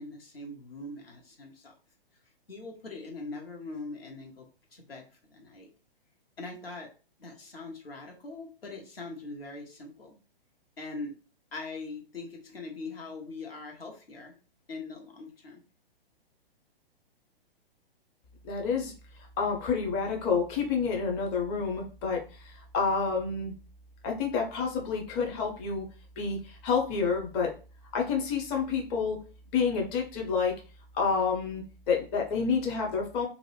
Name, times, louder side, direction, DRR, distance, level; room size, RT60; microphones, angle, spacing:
voice 1, 0.0-1.7 2.5-5.7 6.4-6.9 7.2-10.2 10.8-11.1 11.5-14.3 14.7-15.6, left 3 dB, 75° left, 1 dB, 1.1 m, -42 dB
voice 2, 18.4-18.9 19.4-23.5 24.0-25.9 26.2-27.5 27.9-29.2 29.5-30.5 30.9-33.3, left 5 dB, 25° left, 1 dB, 0.5 m, -29 dB
2.5 x 2.0 x 3.1 m, 0.35 s
figure-of-eight pair, 120°, 30 cm